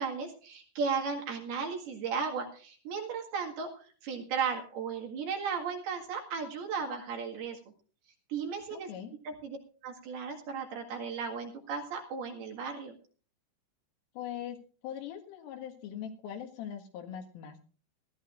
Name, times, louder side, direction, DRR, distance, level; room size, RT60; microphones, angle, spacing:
voice 1, 0.0-7.6 8.3-8.9 9.2-9.6 9.8-12.9, right 5 dB, 60° right, 1 dB, 3.4 m, -35 dB
voice 2, 8.7-9.1 14.2-14.6 14.8-17.6, left 9 dB, 80° left, 4 dB, 4.2 m, -41 dB
20.5 x 13.5 x 2.5 m, 0.39 s
omnidirectional pair, 5.7 m